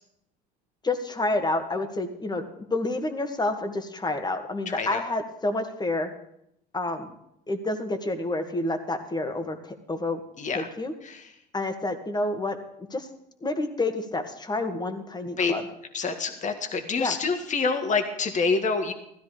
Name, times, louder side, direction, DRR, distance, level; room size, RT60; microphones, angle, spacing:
voice 1, 0.8-6.1 6.7-7.1 7.5-10.2 10.5-10.9 11.5-12.6 12.9-13.1 13.4-15.6 17.0-17.2, left 2 dB, 20° left, 7 dB, 2.1 m, -29 dB
voice 2, 4.7-5.0 10.4-10.7 11.0-11.3 15.4-15.5 15.9-18.9, left 4 dB, 35° left, 7 dB, 1.8 m, -27 dB
15.5 x 14.0 x 5.1 m, 0.77 s
hypercardioid pair, 75°, 21 cm